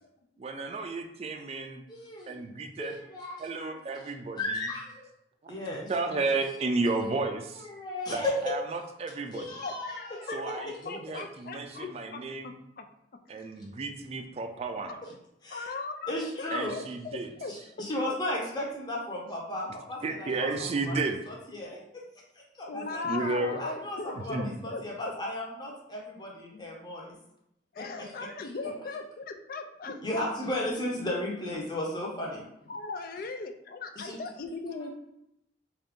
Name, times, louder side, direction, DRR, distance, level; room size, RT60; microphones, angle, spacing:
voice 1, 0.4-1.8 2.3-3.0 3.4-4.7 5.4-7.7 8.1-9.6 10.3-12.6 13.3-14.9 16.5-17.3 20.0-21.2 22.7-23.6 24.1-24.7, right 3 dB, 35° right, 5 dB, 0.3 m, -33 dB
voice 2, 1.9-2.3 2.8-4.0 4.4-5.1 5.5-6.2 7.7-8.3 9.3-10.3 13.6-13.7 15.4-15.7 16.1-16.7 17.5-20.5 20.9-21.0 21.3-21.8 22.5-23.0 23.6-27.2 27.8-28.1 30.0-32.4 34.0-34.2, left 1 dB, 25° left, -3 dB, 0.9 m, -35 dB
voice 3, 9.6-12.9 14.9-15.0 15.5-16.1 16.4-17.9 22.7-24.8 27.7-30.0 32.7-34.9, left 4 dB, 55° left, 6 dB, 0.4 m, -39 dB
3.8 x 2.5 x 3.6 m, 0.81 s
head